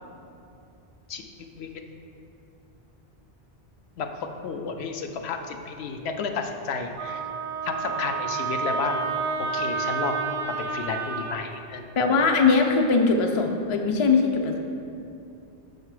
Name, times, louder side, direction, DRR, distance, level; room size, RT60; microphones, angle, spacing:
voice 1, 1.1-1.8 4.0-7.3 7.6-9.0 9.4-10.2 10.5-11.9, left 5 dB, 80° left, 5 dB, 0.8 m, -32 dB
Wind instrument woodwind instrument, 7.0-11.4, right 5 dB, 55° right, 0.3 m, -29 dB
voice 2, 12.0-14.6, left 4 dB, 45° left, 3 dB, 0.4 m, -21 dB
6.5 x 4.7 x 4.8 m, 2.7 s
omnidirectional pair, 1.1 m